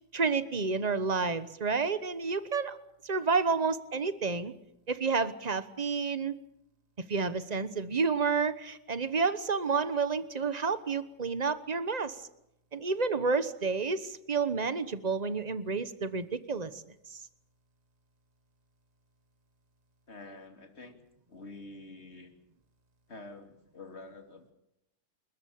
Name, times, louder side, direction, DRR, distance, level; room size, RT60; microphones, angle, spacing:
voice 1, 0.1-2.8 3.0-4.5 4.9-6.3 7.1-12.2 12.7-16.8 17.1-17.2, right 4 dB, 30° right, 13 dB, 0.8 m, -30 dB
voice 2, 20.1-21.0 21.3-22.3 23.1-24.5, left 2 dB, 30° left, 5 dB, 3.1 m, -47 dB
29.0 x 14.5 x 8.7 m, 0.83 s
omnidirectional pair, 2.3 m